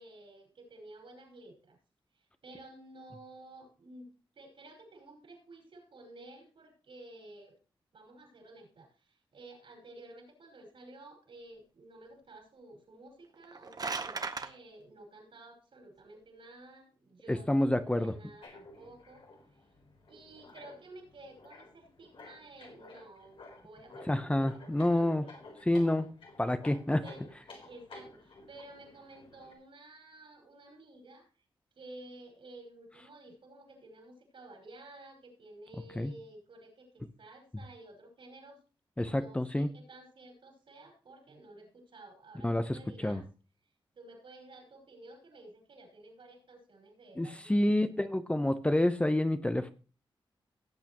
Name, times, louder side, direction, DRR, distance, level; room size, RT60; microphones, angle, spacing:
voice 1, 0.0-1.8 2.4-4.1 4.3-7.5 7.9-19.2 20.1-25.3 27.0-27.2 27.5-31.3 31.7-38.6 39.0-43.2 43.9-48.0, right 2 dB, 70° right, 3 dB, 5.1 m, -53 dB
sound 1, 13.3-14.5, right 4 dB, 45° right, 0.9 m, -36 dB
voice 2, 17.3-18.1 24.1-25.3 25.7-26.1 26.4-27.0 36.0-36.1 39.0-39.7 42.4-43.2 47.2-49.7, left 1 dB, 15° left, 9 dB, 0.8 m, -28 dB
sound 2, 18.4-29.5, left 2 dB, 80° left, 3.7 m, -53 dB
17.0 x 8.1 x 3.0 m, 0.35 s
wide cardioid pair, 90°, 9 cm